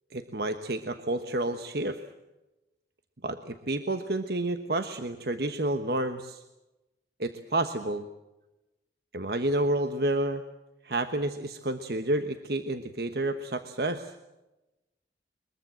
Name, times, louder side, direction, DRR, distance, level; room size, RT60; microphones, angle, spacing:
voice 1, 0.1-2.0 3.2-6.4 7.2-8.1 9.1-10.4 10.8-14.1, right 1 dB, 65° right, 8 dB, 1.2 m, -30 dB
22.5 x 22.5 x 7.5 m, 1.0 s
head